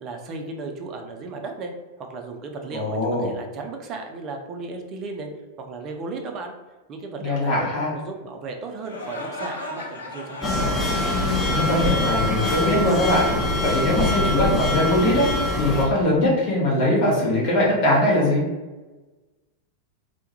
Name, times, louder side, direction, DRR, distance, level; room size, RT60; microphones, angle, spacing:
voice 1, 0.0-1.7 2.0-5.3 5.6-6.5 6.9-7.7 7.9-10.7, right 3 dB, 35° right, 3 dB, 0.4 m, -35 dB
voice 2, 2.7-3.3 7.2-7.9 11.5-13.3 13.6-15.3 15.6-18.4, left 1 dB, 45° left, -4 dB, 0.7 m, -21 dB
sound 1, 8.8-14.0, left 1 dB, 75° left, 0.4 m, -36 dB
sound 2, 10.4-15.9, left 2 dB, 10° left, 0.6 m, -23 dB
2.2 x 2.0 x 2.8 m, 1.2 s
figure-of-eight pair, 90°, 0 cm